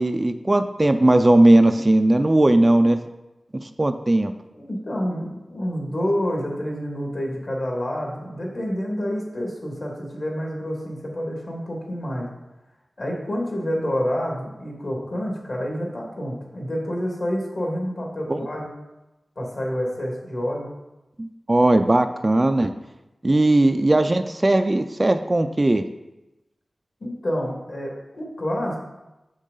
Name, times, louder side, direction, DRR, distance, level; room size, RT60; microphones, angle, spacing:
voice 1, 0.0-3.0 3.6-4.3 18.3-18.4 21.2-22.7 23.2-25.8, right 1 dB, 25° right, 8 dB, 0.4 m, -18 dB
voice 2, 4.5-12.3 13.0-18.7 19.4-20.7 23.3-23.4 27.0-28.8, equal, 55° left, -2 dB, 2.1 m, -28 dB
6.4 x 6.3 x 3.9 m, 0.98 s
wide cardioid pair, 90°, 0 cm